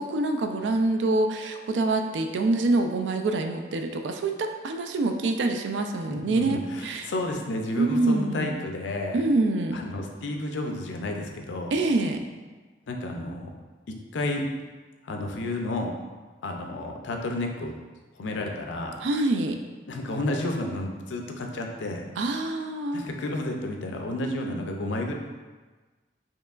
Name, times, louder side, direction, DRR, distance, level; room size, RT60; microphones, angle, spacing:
voice 1, 0.0-7.1 7.8-8.5 9.1-9.8 11.7-12.2 19.0-19.6 22.2-23.0, right 2 dB, 80° right, 5 dB, 0.4 m, -25 dB
voice 2, 6.1-9.2 9.7-11.7 12.9-13.5 13.9-14.5 15.0-16.0 16.4-17.7 18.2-19.0 19.9-22.1 22.9-25.1, left 1 dB, 85° left, 2 dB, 0.5 m, -31 dB
4.4 x 2.9 x 2.4 m, 1.3 s
head